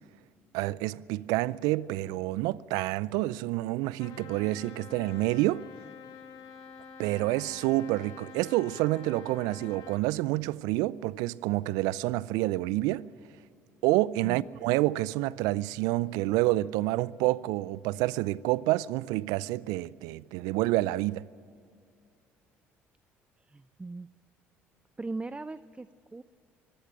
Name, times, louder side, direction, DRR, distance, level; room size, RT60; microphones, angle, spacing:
voice 1, 0.5-5.7 7.0-13.1 13.8-21.2, right 18 dB, 75° right, 0.4 m, -28 dB
Trumpet, 4.0-10.0, left 6 dB, 65° left, 1.8 m, -47 dB
voice 2, 23.4-24.1 25.0-26.2, right 3 dB, 20° right, 0.6 m, -39 dB
25.0 x 14.0 x 9.0 m
hypercardioid pair, 60°, 6 cm